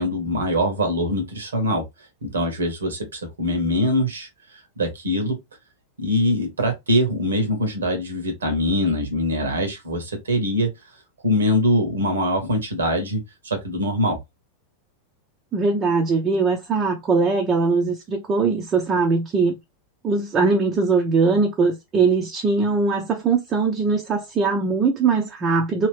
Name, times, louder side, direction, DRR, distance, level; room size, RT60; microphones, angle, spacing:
voice 1, 0.0-1.8 2.2-4.3 4.8-5.4 6.0-10.7 11.2-14.2, equal, 70° right, 1.3 m, -23 dB
voice 2, 15.5-19.6 20.0-25.9, right 4 dB, 25° right, 0.7 m, -21 dB
3.0 x 3.0 x 3.2 m
figure-of-eight pair, 90°, 0 cm